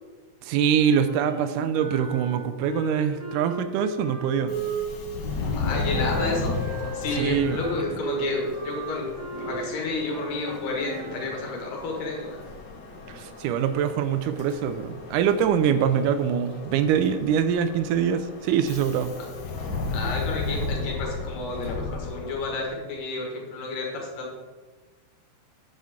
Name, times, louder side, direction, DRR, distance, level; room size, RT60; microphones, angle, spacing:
voice 1, 0.4-4.5 7.1-7.6 13.1-19.2, right 8 dB, 80° right, 10 dB, 2.1 m, -24 dB
Wind instrument woodwind instrument, 1.0-5.2 5.9-11.3, right 2 dB, 30° right, 2.1 m, -35 dB
Subway metro underground, 4.4-22.8, left 3 dB, 70° left, 1.0 m, -34 dB
voice 2, 5.6-6.5 6.9-9.1 9.4-12.4 19.9-24.4, left 3 dB, 85° left, -1 dB, 3.5 m, -31 dB
9.7 x 7.5 x 3.6 m, 1.3 s
omnidirectional pair, 3.7 m